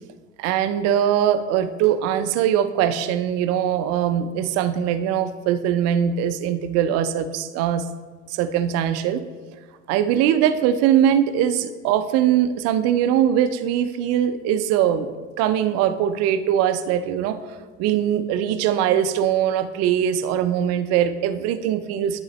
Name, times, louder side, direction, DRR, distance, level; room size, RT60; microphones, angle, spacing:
voice 1, 0.4-7.8 8.3-9.2 9.9-15.1 15.4-17.4 17.8-22.2, right 10 dB, 45° right, 11 dB, 0.6 m, -21 dB
11.5 x 4.0 x 3.1 m, 1.4 s
figure-of-eight pair, 70°, 37 cm